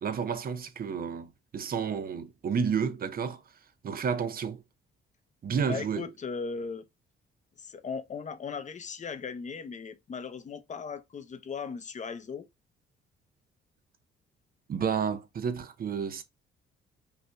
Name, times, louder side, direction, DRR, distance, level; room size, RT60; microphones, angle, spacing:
voice 1, 0.0-3.4 3.8-4.6 5.4-6.0 14.7-16.2, right 6 dB, 45° right, 0.8 m, -31 dB
voice 2, 5.7-6.8 7.6-12.5, left 5 dB, 40° left, 0.7 m, -37 dB
5.5 x 2.6 x 2.2 m
cardioid pair, 90°, 20 cm